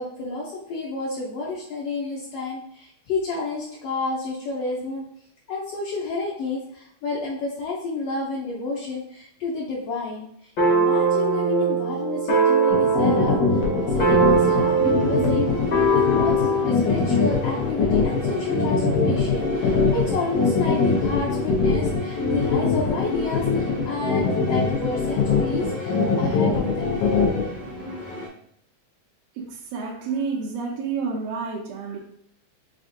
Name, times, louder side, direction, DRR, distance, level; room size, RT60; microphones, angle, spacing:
voice 1, 0.0-5.0 5.5-10.3 10.7-27.0, left 3 dB, 70° left, -5 dB, 1.7 m, -30 dB
sound 1, 10.6-16.8, right 3 dB, 55° left, 1.1 m, -21 dB
sound 2, 12.7-27.4, left 5 dB, 85° left, 2.4 m, -22 dB
sound 3, 13.6-28.3, left 1 dB, 15° left, 0.4 m, -36 dB
voice 2, 29.4-32.0, right 5 dB, 75° right, -1 dB, 1.8 m, -29 dB
5.6 x 2.6 x 2.6 m, 0.71 s
omnidirectional pair, 3.3 m